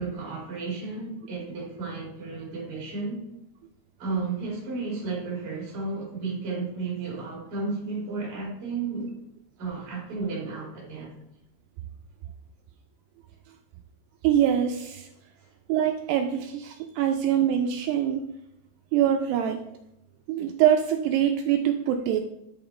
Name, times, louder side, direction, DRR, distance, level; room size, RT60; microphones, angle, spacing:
voice 1, 0.0-3.2 4.0-9.1 9.6-11.1 15.4-15.6, right 4 dB, 40° right, -4 dB, 2.8 m, -33 dB
voice 2, 14.2-15.1 15.7-18.3 18.9-19.6 20.3-22.2, right 10 dB, 85° right, 5 dB, 2.4 m, -24 dB
11.0 x 5.8 x 3.2 m, 0.83 s
omnidirectional pair, 5.2 m